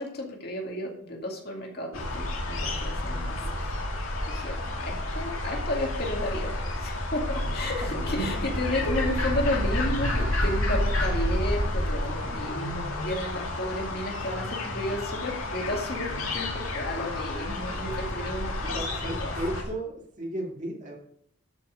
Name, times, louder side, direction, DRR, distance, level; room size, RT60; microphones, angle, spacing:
voice 1, 0.0-3.6 4.0-19.3, left 1 dB, 50° left, 0 dB, 2.2 m, -33 dB
sound 1, 1.9-19.6, left 1 dB, 85° left, 2.3 m, -30 dB
voice 2, 18.6-21.0, right 1 dB, 35° right, 0 dB, 2.3 m, -35 dB
12.5 x 5.8 x 5.1 m, 0.69 s
head